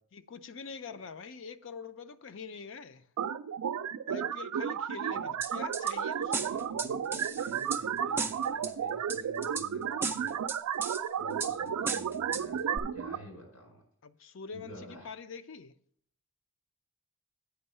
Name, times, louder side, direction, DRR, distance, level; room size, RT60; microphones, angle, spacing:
voice 1, 0.1-3.0 4.1-6.6 14.0-15.7, left 5 dB, 55° left, 0.4 m, -45 dB
sound 1, 3.2-13.2, right 8 dB, 85° right, 0.4 m, -33 dB
voice 2, 5.1-5.4 6.6-10.4 11.2-13.8 14.5-15.1, equal, 90° left, 4.3 m, -50 dB
sound 2, 5.4-5.9 6.3-7.8 8.2-8.7 9.1-9.7 10.0-11.0 11.4-11.5 11.9-12.4 12.8-12.9, right 4 dB, 10° right, 0.3 m, -35 dB
8.7 x 5.4 x 5.4 m
head